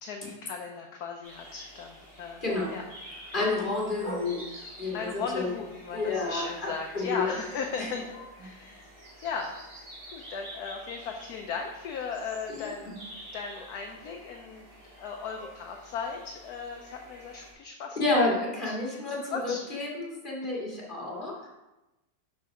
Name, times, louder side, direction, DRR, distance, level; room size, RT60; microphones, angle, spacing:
voice 1, 0.0-2.4 2.7-2.8 3.1-3.3 4.9-8.1 8.4-8.9 9.2-9.6 10.1-12.9 13.3-14.7 15.0-18.0 18.9-19.6, left 5 dB, 65° left, 2 dB, 1.1 m, -37 dB
sound 1, 1.2-17.5, right 1 dB, 50° right, 3.5 m, -49 dB
voice 2, 3.3-4.4 4.8-5.1 5.3-5.5 5.9-6.5 6.9-7.3 7.8-7.9 12.5-12.9 15.4-15.5 18.0-21.3, left 2 dB, 25° left, -4 dB, 2.1 m, -29 dB
6.2 x 5.9 x 5.7 m, 1.0 s
omnidirectional pair, 2.0 m